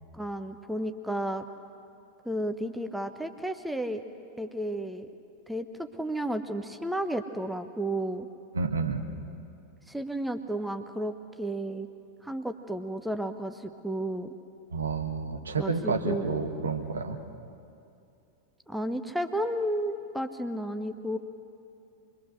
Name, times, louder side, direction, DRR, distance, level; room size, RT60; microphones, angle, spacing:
voice 1, 0.1-1.5 2.2-4.0 4.4-5.1 5.5-8.3 9.9-11.9 12.2-14.3 15.6-16.3 18.7-21.2, right 1 dB, 5° right, 8 dB, 0.9 m, -32 dB
voice 2, 8.5-9.0 14.7-17.2, right 4 dB, 70° right, 4 dB, 1.7 m, -30 dB
26.0 x 22.0 x 6.5 m, 2.6 s
figure-of-eight pair, 90°, 0 cm